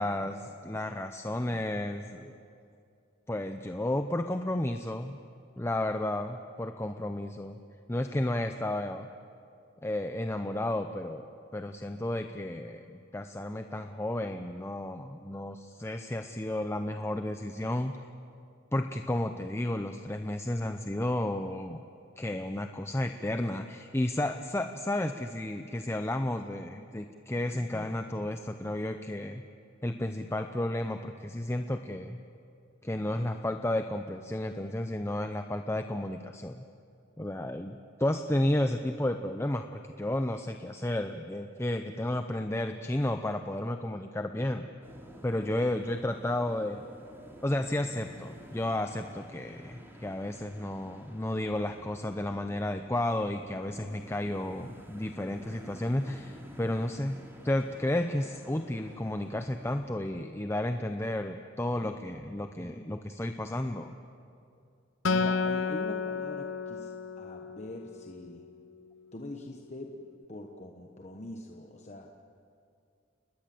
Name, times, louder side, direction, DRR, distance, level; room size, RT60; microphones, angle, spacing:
voice 1, 0.0-2.4 3.3-5.2 5.6-7.6 7.9-9.1 9.8-11.3 11.5-17.9 18.7-21.8 22.2-29.4 29.8-32.2 32.8-36.6 37.2-44.7 45.2-46.8 47.4-63.9, left 1 dB, 15° left, 7 dB, 0.7 m, -32 dB
sound 1, 44.8-59.9, equal, 10° right, 3.1 m, -51 dB
Acoustic guitar, 65.0-68.5, left 4 dB, 75° left, 0.8 m, -32 dB
voice 2, 65.1-68.5 69.1-69.9 70.2-72.1, left 1 dB, 35° left, 1 dB, 1.2 m, -43 dB
29.5 x 20.5 x 7.8 m, 2.5 s
head